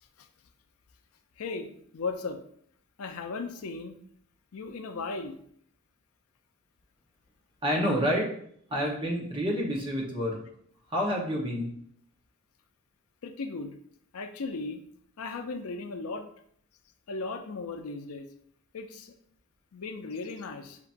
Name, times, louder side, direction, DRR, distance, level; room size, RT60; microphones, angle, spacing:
voice 1, 1.4-2.4 3.0-4.0 4.5-5.4 13.2-13.7 14.1-14.8 15.2-16.3 17.1-18.3 18.7-19.1 19.7-20.8, left 3 dB, 90° left, 6 dB, 0.5 m, -36 dB
voice 2, 7.6-8.3 8.7-10.4 10.9-11.7, equal, 25° right, -2 dB, 1.0 m, -28 dB
6.9 x 2.9 x 2.6 m, 0.64 s
head